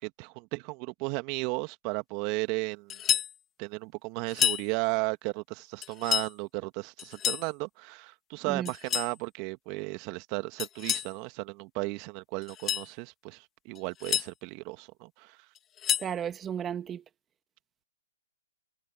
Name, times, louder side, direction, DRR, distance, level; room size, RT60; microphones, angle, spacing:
voice 1, 0.0-3.0 3.6-15.5, right 28 dB, 35° right, 1.9 m, -35 dB
sound 1, 2.9-3.3 4.3-4.7 5.8-6.3 7.0-7.5 8.7-9.1 10.6-11.1 12.4-12.9 13.8-14.3 15.6-16.1, left 10 dB, 20° left, 2.9 m, -29 dB
voice 2, 16.0-17.0, right 9 dB, 15° right, 2.3 m, -34 dB
hypercardioid pair, 130°, 0 cm